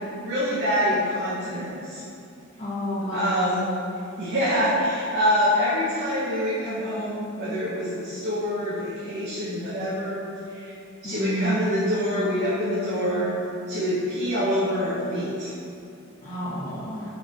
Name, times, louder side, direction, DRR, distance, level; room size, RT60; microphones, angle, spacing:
voice 1, 0.2-2.0 3.1-3.6 4.2-10.2 10.5-10.7 11.0-13.3 13.7-15.5, equal, 50° right, -9 dB, 1.1 m, -25 dB
voice 2, 2.6-3.3 11.0-11.6 16.2-17.0, equal, 35° left, -13 dB, 1.3 m, -29 dB
6.1 x 4.0 x 4.1 m, 2.7 s
head